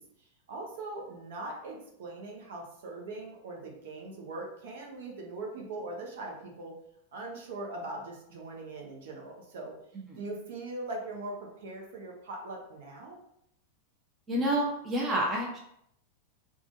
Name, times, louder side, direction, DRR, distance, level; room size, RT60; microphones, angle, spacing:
voice 1, 0.0-6.7 7.1-9.7 10.2-13.2, right 2 dB, 55° right, -1 dB, 0.9 m, -41 dB
voice 2, 14.3-15.6, right 1 dB, 20° right, -2 dB, 0.8 m, -29 dB
4.6 x 2.5 x 2.6 m, 0.73 s
figure-of-eight pair, 90°, 0 cm